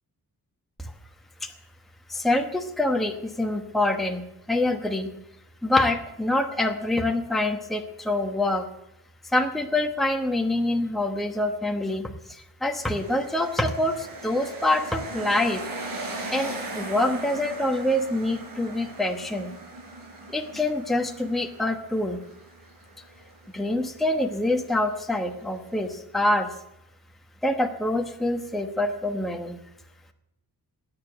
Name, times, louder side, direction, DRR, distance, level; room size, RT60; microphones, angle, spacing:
voice 1, 2.1-5.1 5.6-8.7 9.3-15.6 16.3-19.5 20.3-22.2 23.5-26.5 27.4-29.6, left 1 dB, ahead, 3 dB, 1.0 m, -26 dB
sound 1, 12.8-25.9, right 2 dB, 60° right, 4.4 m, -39 dB
20.0 x 9.0 x 8.0 m, 0.87 s
wide cardioid pair, 175°, 39 cm